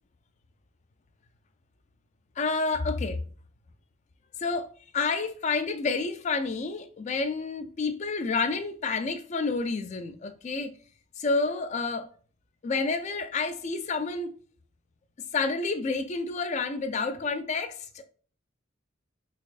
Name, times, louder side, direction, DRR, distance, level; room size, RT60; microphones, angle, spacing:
voice 1, 2.4-3.2 4.4-4.7 4.9-10.7 11.2-12.1 12.6-14.4 15.3-18.0, left 4 dB, 35° left, 0.3 m, -29 dB
4.0 x 2.5 x 2.4 m
head